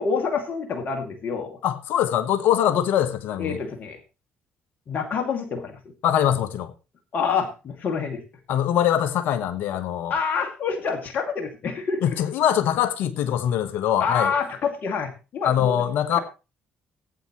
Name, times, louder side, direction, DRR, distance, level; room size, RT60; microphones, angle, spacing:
voice 1, 0.0-1.6 3.4-4.0 4.9-5.8 7.1-8.2 10.1-12.0 14.0-15.7, left 5 dB, 55° left, 2.5 m, -27 dB
voice 2, 1.6-3.6 6.0-6.7 8.5-10.1 12.0-14.3 15.4-16.2, left 10 dB, 70° left, 1.3 m, -23 dB
17.0 x 8.9 x 3.1 m
hypercardioid pair, 55°, 4 cm